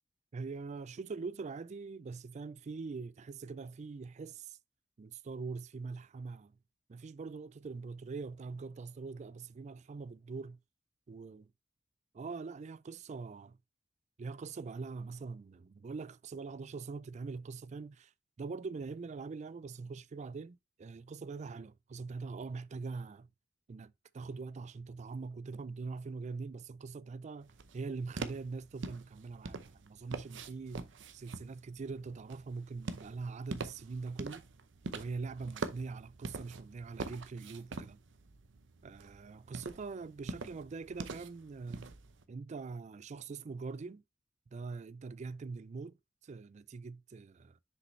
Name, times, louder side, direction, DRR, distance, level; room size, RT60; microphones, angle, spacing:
voice 1, 0.3-4.6 5.0-6.6 6.9-10.6 11.1-11.4 12.1-13.6 14.2-18.1 18.4-23.3 23.7-30.9 31.1-34.5 34.9-38.0 38.8-41.9 42.3-44.0 44.5-46.0 46.2-47.6, right 4 dB, 40° right, 0.4 m, -43 dB
sound 1, 27.4-42.2, right 3 dB, 80° right, 0.7 m, -45 dB
6.5 x 5.0 x 3.2 m
head